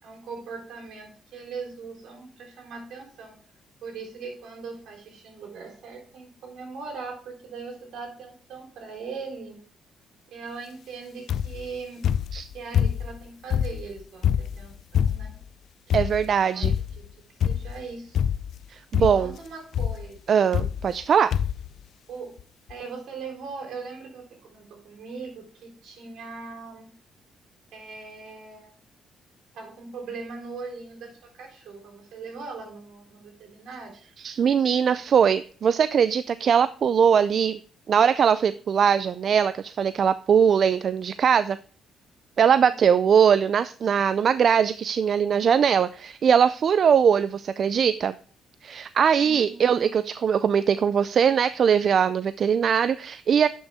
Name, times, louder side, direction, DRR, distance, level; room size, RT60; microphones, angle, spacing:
voice 1, 0.0-3.4 3.8-9.6 10.3-12.1 12.5-15.4 16.4-16.6 17.0-17.1 17.4-18.2 18.9-20.5 22.1-22.4 22.7-26.9 27.7-28.7 29.5-33.9 42.5-42.8 49.2-49.9, right 4 dB, 75° right, 1 dB, 3.7 m, -40 dB
sound 1, 11.3-11.7 12.0-13.2 13.5-15.4 15.9-16.3 16.6-17.0 17.4-17.8 18.1-18.6 18.9-19.4 19.7-20.0 20.5-21.0 21.3-21.7 22.4-22.5 22.7-22.8, left 9 dB, 65° left, 0.4 m, -25 dB
voice 2, 15.9-16.8 18.7-19.3 20.3-21.3 34.2-37.6 37.9-41.6 42.4-48.1 48.6-53.5, right 7 dB, 55° right, 14 dB, 0.3 m, -21 dB
10.5 x 6.2 x 3.4 m, 0.43 s
cardioid pair, 90°, 0 cm